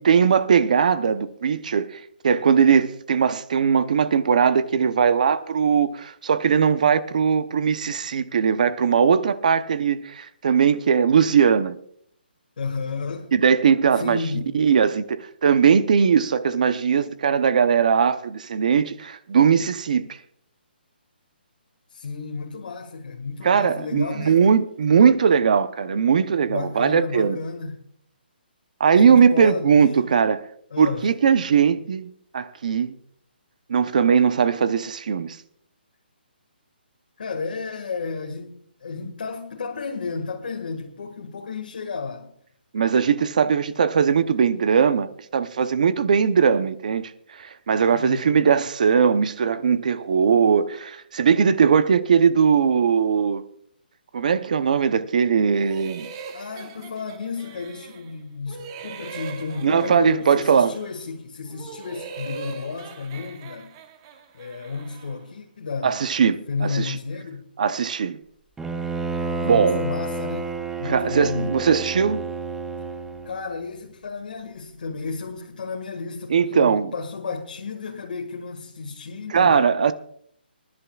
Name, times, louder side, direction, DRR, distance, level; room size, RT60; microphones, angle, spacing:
voice 1, 0.0-11.7 13.3-14.2 14.5-20.2 23.4-27.4 28.8-30.4 30.8-32.9 33.7-35.4 42.7-53.4 54.1-56.1 59.6-60.7 65.8-66.9 67.6-68.2 69.4-69.8 70.8-72.2 76.3-76.9 79.3-79.9, right 6 dB, 45° right, 0.7 m, -20 dB
voice 2, 12.6-13.3 13.9-14.5 21.9-24.5 26.5-27.8 29.0-29.8 30.7-31.1 37.2-42.3 47.9-48.3 56.3-63.7 64.3-67.5 69.4-70.5 70.8-71.5 73.2-79.7, left 4 dB, 60° left, 1.8 m, -32 dB
sound 1, 55.5-58.1 58.5-61.0 61.4-65.2, right 5 dB, 25° right, 1.0 m, -41 dB
Bowed string instrument, 68.6-73.4, right 3 dB, 5° right, 0.5 m, -30 dB
25.5 x 11.0 x 2.4 m
hypercardioid pair, 170°, 6 cm